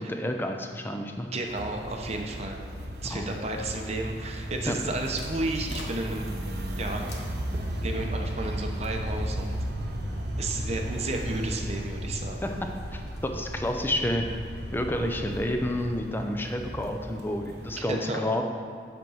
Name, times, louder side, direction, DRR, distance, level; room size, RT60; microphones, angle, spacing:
voice 1, 0.0-1.3 3.1-3.3 4.7-4.8 12.4-14.3 14.7-18.4, left 1 dB, 10° left, 4 dB, 0.6 m, -30 dB
voice 2, 1.3-2.6 3.0-6.3 6.8-7.4 7.8-9.6 10.4-12.4 17.8-18.2, right 2 dB, 40° right, 2 dB, 0.7 m, -32 dB
sound 1, 1.5-17.8, right 1 dB, 65° right, 1.0 m, -35 dB
sound 2, 4.7-16.1, left 1 dB, 75° left, 1.2 m, -42 dB
7.9 x 4.5 x 6.3 m, 2.3 s
head